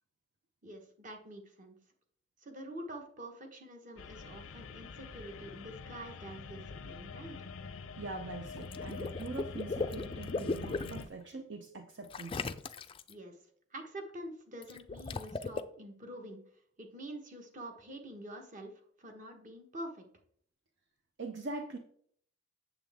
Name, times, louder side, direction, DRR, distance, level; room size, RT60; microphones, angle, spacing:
voice 1, 0.6-1.8 2.4-7.4 13.1-13.4 13.7-16.4 16.8-18.7 19.0-20.0, right 1 dB, 40° right, 4 dB, 1.2 m, -46 dB
sound 1, 4.0-11.1, left 4 dB, 90° left, 0.6 m, -45 dB
voice 2, 8.0-12.4 21.2-21.8, right 3 dB, 60° right, 5 dB, 0.7 m, -43 dB
Water / Liquid, 8.5-11.0 12.1-13.1 14.6-15.6, left 3 dB, 25° left, 0.4 m, -37 dB
8.0 x 7.1 x 3.5 m, 0.62 s
head